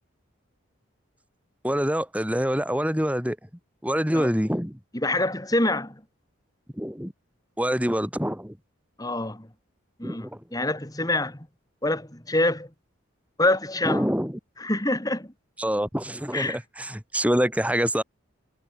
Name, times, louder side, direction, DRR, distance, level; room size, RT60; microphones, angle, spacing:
voice 1, 1.6-3.4 3.8-4.8 6.7-7.1 7.6-8.6 10.0-10.4 13.8-14.4 15.6-18.0, equal, 5° right, 3.1 m, -26 dB
voice 2, 4.9-6.0 9.0-9.5 10.0-11.5 11.8-12.7 13.4-14.1 14.6-15.3 16.3-16.6, left 2 dB, 15° left, 2.5 m, -26 dB
head